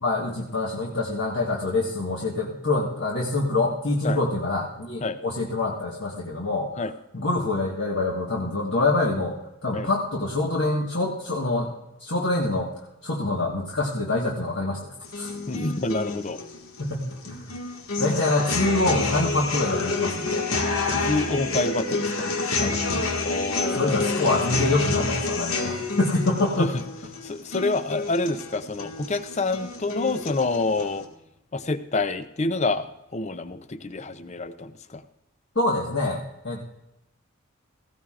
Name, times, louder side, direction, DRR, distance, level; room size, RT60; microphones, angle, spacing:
voice 1, 0.0-6.7 7.1-11.7 12.0-12.7 13.0-15.3 16.8-17.5 18.0-20.5 22.6-22.8 23.7-26.7 35.5-36.7, left 2 dB, 55° left, -4 dB, 1.5 m, -25 dB
sound 1, 15.0-31.0, left 3 dB, 85° left, 1.8 m, -29 dB
voice 2, 15.5-16.4 21.1-22.3 23.2-24.2 26.6-26.7 27.2-31.1 31.5-35.0, left 3 dB, 30° left, 12 dB, 0.6 m, -27 dB
17.5 x 15.5 x 2.5 m, 0.89 s
head